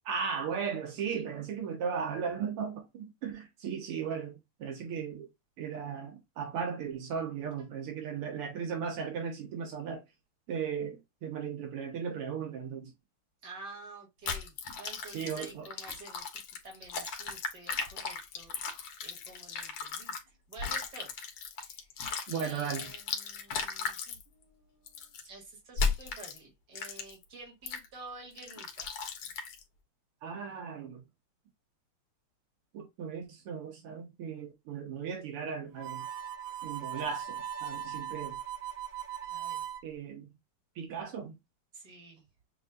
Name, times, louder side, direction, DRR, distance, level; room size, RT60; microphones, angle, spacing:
voice 1, 0.1-5.3 5.6-10.0 10.5-12.9 15.1-15.7 22.3-22.9 30.2-31.0 32.7-36.1 36.6-38.4 39.8-40.3 40.8-41.3, right 6 dB, 85° right, 2.0 m, -36 dB
voice 2, 13.4-18.7 19.0-21.3 21.5-21.9 22.3-28.9 39.2-39.6 41.7-42.2, right 3 dB, 50° right, 2.4 m, -50 dB
sound 1, 14.3-20.2 20.5-24.2 24.9-25.2 25.8-26.4 26.8-27.2 27.7-27.9 28.4-29.6, left 5 dB, 75° left, 1.8 m, -36 dB
Harmonica, 35.8-39.8, right 10 dB, 70° right, 1.1 m, -39 dB
7.2 x 2.7 x 2.4 m
omnidirectional pair, 2.4 m